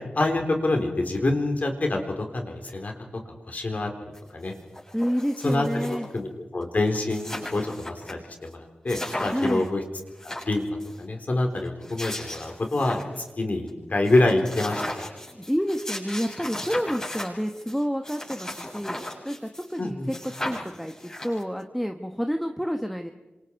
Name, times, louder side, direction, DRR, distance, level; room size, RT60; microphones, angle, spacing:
voice 1, 0.1-2.9 3.5-4.5 5.4-9.8 10.2-10.6 11.0-13.0 13.4-15.1 19.8-20.1, left 2 dB, 50° left, 3 dB, 4.0 m, -26 dB
sound 1, 4.1-4.2 4.5-6.2 6.6-6.7 6.9-8.1 8.4-8.5 8.9-9.7 10.1-11.0 11.6-13.3 13.7-13.8 14.0-19.8 20.1-21.6, left 1 dB, 20° left, 7.7 m, -36 dB
voice 2, 4.9-6.1 9.3-9.7 15.3-20.1 20.4-20.9 21.2-23.1, equal, ahead, 5 dB, 1.2 m, -29 dB
28.0 x 26.5 x 4.8 m, 1.1 s
wide cardioid pair, 75°, 3 cm